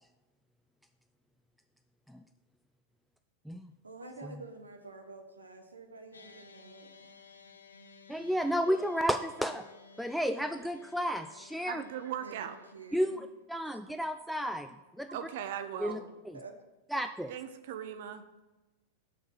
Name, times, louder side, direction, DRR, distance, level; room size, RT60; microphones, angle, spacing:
voice 1, 3.8-7.1 10.3-10.5 12.2-13.2 13.7-13.8 14.3-14.5 15.1-15.2 16.3-16.5, right 3 dB, 75° right, 4 dB, 1.0 m, -49 dB
sound 1, 6.1-12.7, left 5 dB, 75° left, 0.6 m, -56 dB
voice 2, 8.1-9.7 10.0-11.8 12.9-14.7 15.0-15.1 15.8-16.0 16.9-17.3, equal, ahead, 8 dB, 0.3 m, -32 dB
voice 3, 11.7-12.6 15.1-16.0 17.3-18.5, right 9 dB, 55° right, 9 dB, 0.6 m, -39 dB
6.9 x 6.2 x 5.5 m, 1.1 s
figure-of-eight pair, 90°, 0 cm